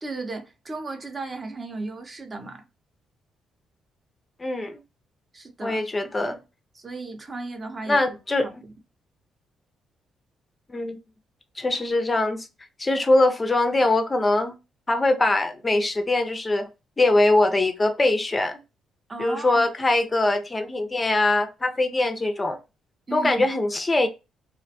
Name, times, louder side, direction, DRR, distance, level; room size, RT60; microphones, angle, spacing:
voice 1, 0.0-2.6 5.3-5.8 6.7-8.0 8.4-8.7 19.1-19.7 23.1-23.4, right 3 dB, 30° right, 0.6 m, -35 dB
voice 2, 4.4-4.8 5.6-6.4 7.9-8.5 10.7-11.0 11.6-12.5 12.8-14.6 14.9-16.7 17.0-18.6 19.2-22.6 23.1-24.1, left 2 dB, 25° left, 0.4 m, -22 dB
2.4 x 2.1 x 2.6 m
cardioid pair, 90°, 0 cm